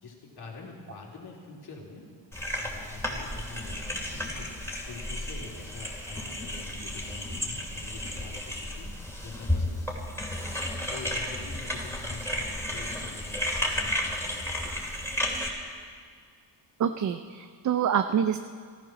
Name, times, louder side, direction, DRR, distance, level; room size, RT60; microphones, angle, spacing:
voice 1, 0.0-2.0 2.6-4.5 4.9-8.9 9.2-10.0 10.3-10.4 10.9-15.0, left 4 dB, 55° left, -2 dB, 3.5 m, -45 dB
sound 1, 2.3-15.5, left 1 dB, 5° left, 2.8 m, -33 dB
voice 2, 16.8-18.4, right 8 dB, 40° right, 9 dB, 0.5 m, -26 dB
14.0 x 13.5 x 6.1 m, 2.1 s
cardioid pair, 95°, 47 cm